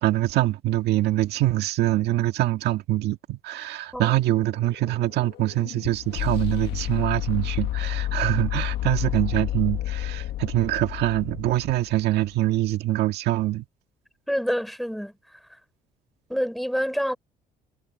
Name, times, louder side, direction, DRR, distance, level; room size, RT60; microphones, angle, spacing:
voice 1, 0.0-13.7, right 15 dB, 80° right, 1.8 m, -24 dB
sound 1, 3.9-12.1, left 13 dB, 80° left, 1.8 m, -30 dB
voice 2, 14.3-15.1 16.3-17.2, equal, ahead, 5.2 m, -27 dB
cardioid pair, 110°, 17 cm